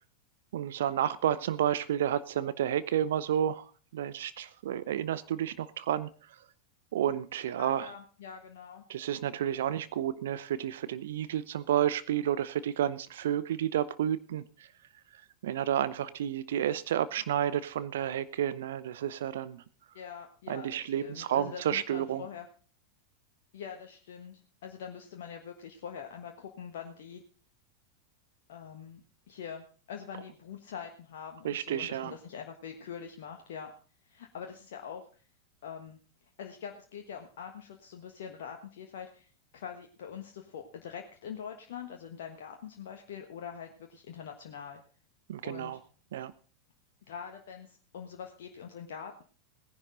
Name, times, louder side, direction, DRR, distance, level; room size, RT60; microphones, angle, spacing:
voice 1, 0.5-6.4 6.9-7.9 8.9-14.7 15.1-19.6 20.5-22.3 31.4-32.1 45.3-45.8 46.1-46.3, right 10 dB, 60° right, 16 dB, 0.6 m, -31 dB
voice 2, 7.6-8.8 19.9-22.4 23.5-27.2 28.5-33.7 34.0-35.2 35.6-36.0 36.4-44.8 45.4-45.8 47.1-49.2, left 7 dB, 55° left, 3 dB, 1.3 m, -44 dB
18.0 x 10.5 x 3.8 m, 0.40 s
figure-of-eight pair, 90°, 0 cm